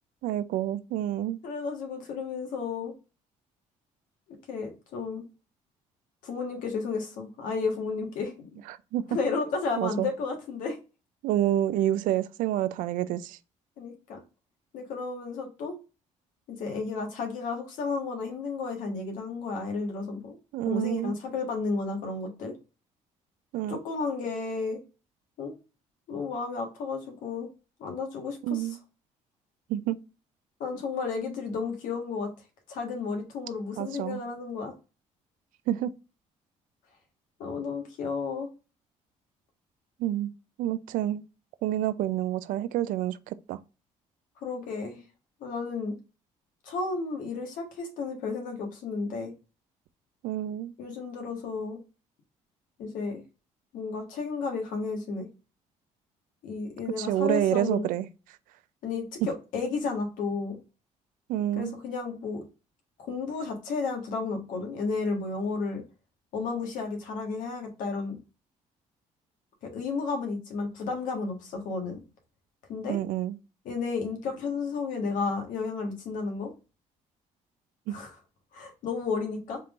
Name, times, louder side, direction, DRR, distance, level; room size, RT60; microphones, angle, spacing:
voice 1, 0.2-1.4 8.7-9.0 9.8-10.1 11.2-13.4 20.5-21.2 23.5-23.8 28.4-28.8 29.7-30.0 33.8-34.2 35.7-35.9 40.0-40.3 40.6-41.2 41.6-43.6 50.2-50.7 57.0-58.1 61.3-61.7 72.9-73.4 77.9-78.0, right 12 dB, 85° right, 0.4 m, -28 dB
voice 2, 1.4-2.9 4.3-5.2 6.2-8.6 9.1-10.8 13.8-14.2 14.7-15.8 16.5-20.3 20.6-22.5 23.7-24.8 25.4-25.5 26.1-27.5 27.8-28.7 30.6-32.3 32.7-34.7 37.4-38.5 44.4-45.0 45.4-46.0 46.6-49.3 50.8-51.8 52.8-53.2 53.7-55.3 56.4-57.9 58.8-60.6 61.6-62.4 63.0-65.8 66.3-68.2 69.6-72.0 72.7-73.0 73.6-76.5 77.9-78.1 78.5-79.6, left 4 dB, 80° left, 1.5 m, -32 dB
4.3 x 3.6 x 2.5 m
cardioid pair, 95°, 13 cm